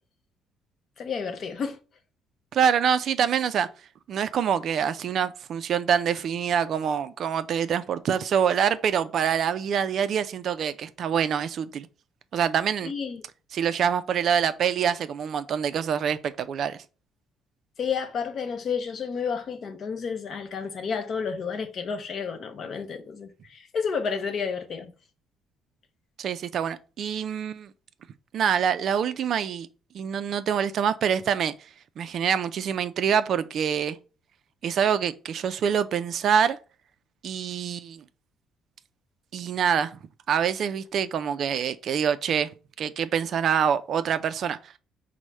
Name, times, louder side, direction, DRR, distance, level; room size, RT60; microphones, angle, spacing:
voice 1, 1.0-1.8 12.8-13.2 17.8-24.9, left 6 dB, 45° left, 0.6 m, -31 dB
voice 2, 2.5-3.7 4.1-11.9 12.3-12.9 13.5-16.8 26.2-27.7 28.3-29.7 29.9-31.5 32.0-34.0 34.6-36.6 37.2-38.0 39.3-40.0 40.3-42.5 42.8-44.6, right 8 dB, 50° right, 0.3 m, -25 dB
4.7 x 2.0 x 4.1 m
cardioid pair, 140°, 0 cm